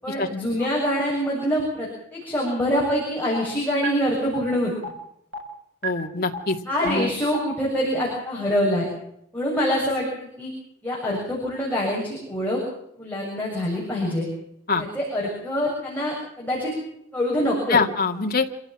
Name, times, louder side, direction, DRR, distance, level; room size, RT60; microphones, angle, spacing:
voice 1, 0.0-4.7 6.7-8.9 9.3-10.5 10.8-12.6 13.0-14.2 14.7-16.7 17.1-17.8, equal, 10° left, -5 dB, 7.1 m, -25 dB
sound 1, 2.8-2.9 3.3-3.4 3.8-3.9 4.3-4.4 4.8-4.9 5.3-5.4 5.8-5.9 6.3-6.4 6.8-6.9 7.3-7.4, right 2 dB, 60° right, 6.8 m, -29 dB
voice 2, 5.8-6.6 6.8-7.1 14.7-14.8 17.7-18.5, left 4 dB, 45° left, 3 dB, 2.2 m, -23 dB
27.0 x 16.0 x 7.7 m, 0.75 s
head